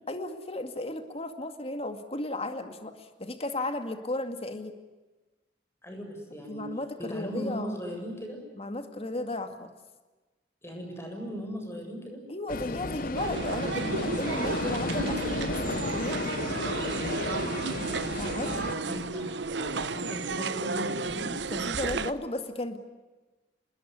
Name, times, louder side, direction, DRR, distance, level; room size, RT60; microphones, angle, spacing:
voice 1, 0.1-4.8 6.5-7.8 8.6-9.7 12.3-16.6 18.2-18.7 21.5-22.8, left 2 dB, 35° left, 7 dB, 2.2 m, -35 dB
voice 2, 5.8-6.6 7.0-8.4 10.6-12.2 18.6-21.4, equal, 15° left, 2 dB, 7.8 m, -38 dB
sound 1, 12.5-18.7, left 3 dB, 50° left, 0.8 m, -33 dB
sound 2, 13.1-22.1, right 4 dB, 70° right, 0.9 m, -32 dB
28.5 x 20.5 x 9.6 m, 1.2 s
head